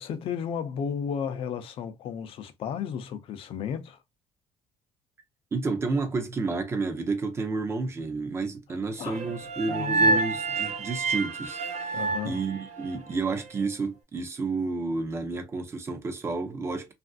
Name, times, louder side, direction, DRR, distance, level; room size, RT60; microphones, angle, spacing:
voice 1, 0.0-4.0 9.0-9.2 9.7-10.2 11.9-12.4, left 7 dB, 50° left, 0.5 m, -33 dB
voice 2, 5.5-16.9, right 3 dB, 20° right, 0.6 m, -31 dB
sound 1, 9.1-13.3, right 3 dB, 70° right, 0.8 m, -28 dB
3.1 x 2.5 x 2.4 m
cardioid pair, 165°, 12 cm